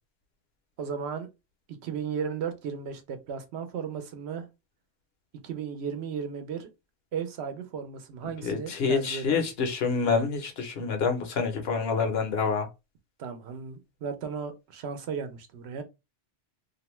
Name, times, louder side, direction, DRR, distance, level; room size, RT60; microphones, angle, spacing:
voice 1, 0.8-1.3 1.8-4.5 5.4-6.7 7.1-9.5 13.2-15.8, right 6 dB, 75° right, 0.9 m, -35 dB
voice 2, 8.4-12.7, left 5 dB, 70° left, 0.9 m, -27 dB
2.5 x 2.1 x 3.0 m
omnidirectional pair, 1.1 m